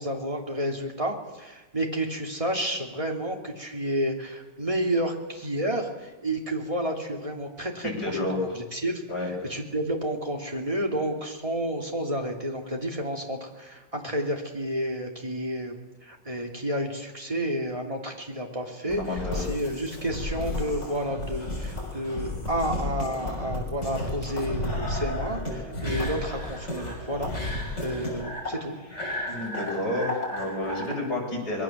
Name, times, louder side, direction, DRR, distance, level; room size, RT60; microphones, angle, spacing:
voice 1, 0.0-9.0 9.5-28.8, right 1 dB, 15° right, 2 dB, 2.9 m, -31 dB
voice 2, 7.8-8.4 9.1-9.3 18.9-19.4 29.3-31.6, left 1 dB, 55° left, -2 dB, 7.5 m, -30 dB
sound 1, 18.9-30.9, left 1 dB, 35° left, 6.7 m, -33 dB
25.5 x 21.0 x 7.5 m, 1.1 s
omnidirectional pair, 2.0 m